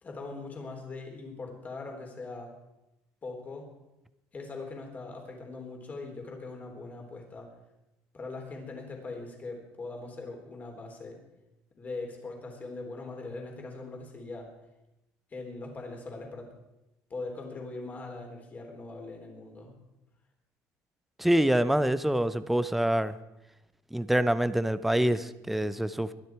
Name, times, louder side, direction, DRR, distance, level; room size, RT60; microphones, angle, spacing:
voice 1, 0.0-2.5 3.2-3.7 4.3-7.5 8.1-11.2 11.8-14.5 15.3-16.5 17.1-19.7, left 3 dB, 25° left, 2 dB, 3.4 m, -41 dB
voice 2, 21.2-23.1 23.9-26.1, right 1 dB, 5° right, 14 dB, 0.5 m, -26 dB
22.5 x 9.7 x 4.7 m, 0.94 s
cardioid pair, 150°, 6 cm